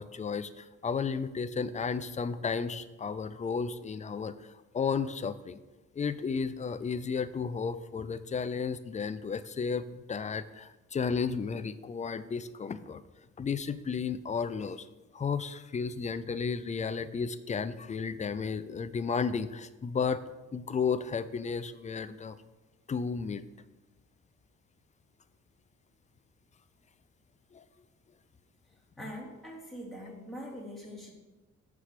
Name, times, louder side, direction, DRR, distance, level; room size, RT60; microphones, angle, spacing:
voice 1, 0.0-5.6 5.9-13.0 13.4-14.9 15.1-20.2 20.5-22.4 22.9-23.4 27.5-27.6, left 5 dB, 25° left, 13 dB, 0.5 m, -33 dB
voice 2, 29.0-31.1, equal, ahead, -3 dB, 2.5 m, -43 dB
7.0 x 4.8 x 6.6 m, 1.1 s
cardioid pair, 90°, 30 cm